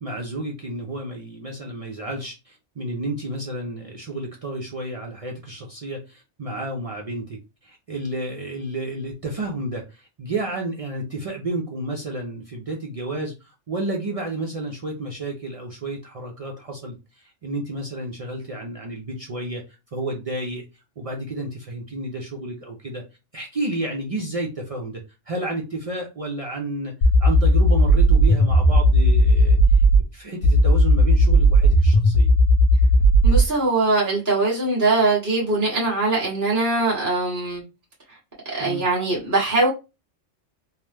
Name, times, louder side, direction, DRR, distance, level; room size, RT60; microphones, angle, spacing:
voice 1, 0.0-19.6 19.9-20.7 21.0-23.0 23.3-32.3 38.6-38.8, right 2 dB, 65° right, 0.3 m, -31 dB
sound 1, 27.0-30.0 30.4-33.4, equal, 60° left, 0.7 m, -15 dB
voice 2, 33.2-37.6 38.5-39.7, right 2 dB, 15° right, 0.9 m, -21 dB
2.9 x 2.0 x 3.2 m
omnidirectional pair, 1.3 m